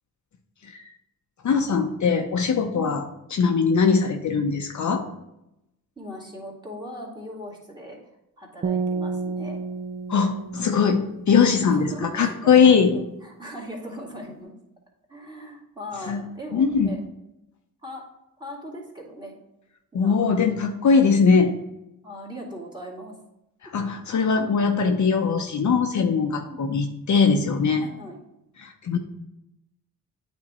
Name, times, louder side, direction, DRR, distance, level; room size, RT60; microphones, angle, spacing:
voice 1, 1.4-3.0 3.3-5.0 10.1-11.9 12.1-13.0 16.1-16.2 16.5-16.9 19.9-21.6 23.6-27.8 28.6-29.0, left 5 dB, 55° left, 4 dB, 0.7 m, -21 dB
voice 2, 6.0-8.0 8.4-9.6 11.6-14.5 15.1-17.0 17.8-18.1 18.4-19.3 19.9-20.3 22.0-23.2 26.5-26.7 27.8-28.2, equal, 10° right, -1 dB, 2.1 m, -38 dB
sound 1, 8.6-11.8, right 4 dB, 30° right, 0.4 m, -31 dB
8.8 x 3.6 x 4.2 m, 0.87 s
cardioid pair, 80°, 36 cm